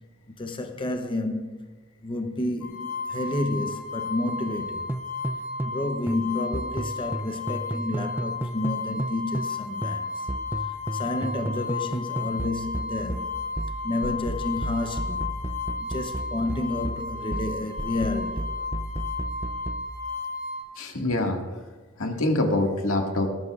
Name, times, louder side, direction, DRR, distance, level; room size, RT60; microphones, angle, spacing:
voice 1, 0.4-1.6 2.0-4.9 5.6-10.3 10.6-13.3 13.8-15.3 15.8-18.5, left 2 dB, 25° left, 0.7 m, -30 dB
sound 1, 2.6-20.6, left 4 dB, 60° left, 1.9 m, -34 dB
sound 2, 4.9-5.8 6.1-9.6 9.8-19.9, right 1 dB, 10° right, 0.4 m, -33 dB
voice 2, 20.8-21.4 22.0-23.3, left 2 dB, 85° left, 1.8 m, -25 dB
19.0 x 13.0 x 2.4 m
head